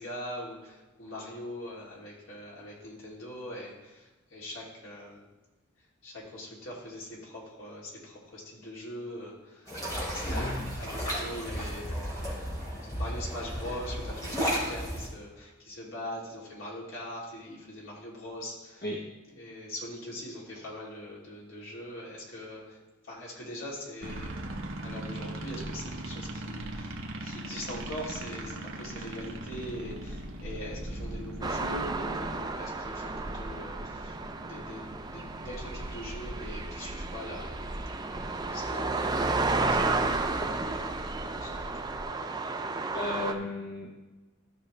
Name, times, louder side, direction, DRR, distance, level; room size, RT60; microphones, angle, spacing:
voice 1, 0.0-5.2 6.0-9.7 10.0-18.8 19.3-22.8 23.1-24.5 24.8-34.1 34.4-37.7 37.9-41.0 41.4-41.7, left 1 dB, 65° left, -5 dB, 3.0 m, -42 dB
sound 1, 9.7-15.1, equal, 15° left, 3.3 m, -33 dB
voice 2, 10.3-10.8 18.8-19.1 42.9-43.9, left 2 dB, 50° left, 0 dB, 0.9 m, -35 dB
sound 2, 24.0-42.0, right 1 dB, 65° right, 1.1 m, -40 dB
sound 3, 31.4-43.3, right 3 dB, 20° right, 0.5 m, -32 dB
15.0 x 6.2 x 3.3 m, 1.1 s
head